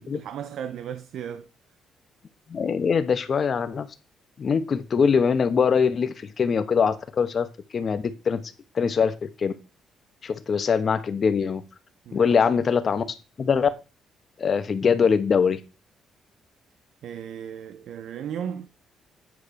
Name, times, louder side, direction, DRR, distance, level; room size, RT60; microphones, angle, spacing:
voice 1, 0.1-1.5 12.1-12.3 17.0-18.7, right 8 dB, 75° right, 0.6 m, -35 dB
voice 2, 2.5-3.9 4.4-7.5 7.7-8.4 8.7-9.5 10.2-11.6 12.1-13.0 13.4-13.7 14.4-15.6, left 6 dB, 45° left, 1.1 m, -22 dB
9.4 x 4.8 x 4.9 m
cardioid pair, 90°, 0 cm